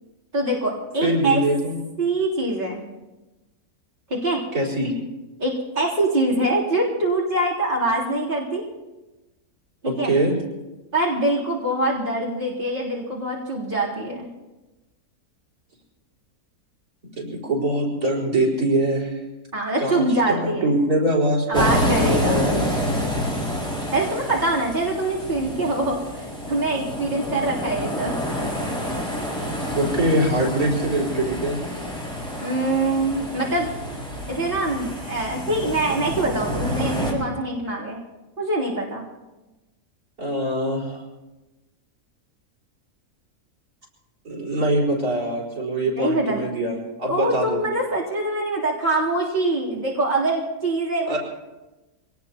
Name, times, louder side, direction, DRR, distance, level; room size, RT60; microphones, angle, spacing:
voice 1, 0.3-1.4 2.0-2.8 4.1-4.4 5.4-8.6 9.8-10.1 10.9-14.3 19.5-20.7 21.5-22.5 23.9-28.2 32.4-33.7 34.3-38.0 38.4-39.1 46.0-46.4 47.1-51.2, right 2 dB, 35° right, -6 dB, 3.7 m, -24 dB
voice 2, 1.0-1.8 4.5-4.9 9.9-10.3 17.2-19.2 19.8-21.7 22.0-22.7 29.8-31.6 33.8-33.9 40.2-41.0 44.3-47.6 51.1-51.2, right 1 dB, 85° right, -3 dB, 5.4 m, -23 dB
sound 1, 21.5-37.1, equal, 5° left, 4.9 m, -28 dB
25.5 x 19.0 x 3.0 m, 1.1 s
omnidirectional pair, 1.6 m